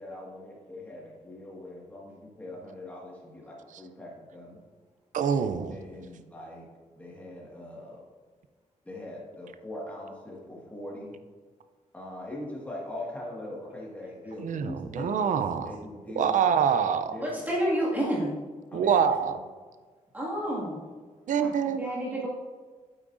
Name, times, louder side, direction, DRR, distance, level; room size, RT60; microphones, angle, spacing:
voice 1, 0.0-4.6 5.7-6.7 7.0-8.0 8.9-11.1 11.9-15.4 15.6-16.8 17.1-17.5 18.7-19.4, left 1 dB, 10° left, -4 dB, 1.8 m, -41 dB
voice 2, 5.1-5.7 14.4-15.7 16.2-17.1 18.7-19.4 21.3-21.9, right 7 dB, 75° right, 10 dB, 0.5 m, -25 dB
voice 3, 17.2-18.3 20.1-20.8 21.8-22.3, equal, 15° right, -7 dB, 1.9 m, -29 dB
8.6 x 8.6 x 2.6 m, 1.5 s
wide cardioid pair, 170°, 13 cm